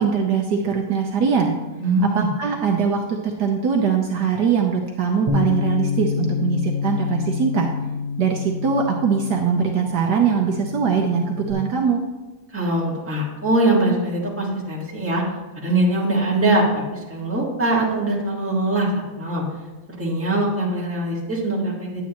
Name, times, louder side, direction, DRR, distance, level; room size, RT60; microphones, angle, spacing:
voice 1, 0.0-1.6 2.1-7.7 8.2-12.0, right 6 dB, 65° right, 1 dB, 1.3 m, -21 dB
voice 2, 1.8-2.3 12.5-15.2 15.6-16.8 17.1-18.9 19.2-19.4 20.0-22.0, right 2 dB, 10° right, -4 dB, 1.6 m, -22 dB
Bass guitar, 5.3-11.5, left 5 dB, 45° right, 0.5 m, -27 dB
9.8 x 8.3 x 3.0 m, 1.2 s
omnidirectional pair, 2.0 m